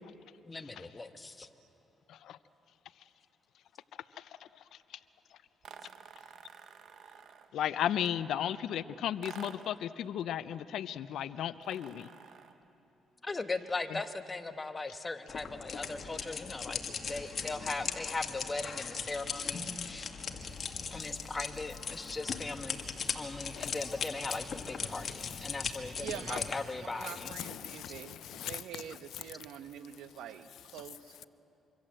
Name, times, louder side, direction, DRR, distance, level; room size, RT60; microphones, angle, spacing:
voice 1, 0.4-1.5 13.2-16.8 17.1-20.1 20.9-22.8 23.1-27.3, left 3 dB, 25° left, 8 dB, 1.3 m, -39 dB
sound 1, 5.6-7.6 9.2-9.8 11.6-12.6, right 7 dB, 65° right, 1.2 m, -51 dB
voice 2, 7.5-12.1 13.9-14.0 23.6-23.7 27.3-28.8 29.1-29.2, left 10 dB, 75° left, 15 dB, 0.6 m, -35 dB
sound 2, 15.3-26.6, left 6 dB, 50° left, 1.9 m, -39 dB
voice 3, 26.0-26.4 26.8-31.2, right 10 dB, 85° right, 10 dB, 1.0 m, -45 dB
25.5 x 25.0 x 7.7 m, 3.0 s
cardioid pair, 90°, 0 cm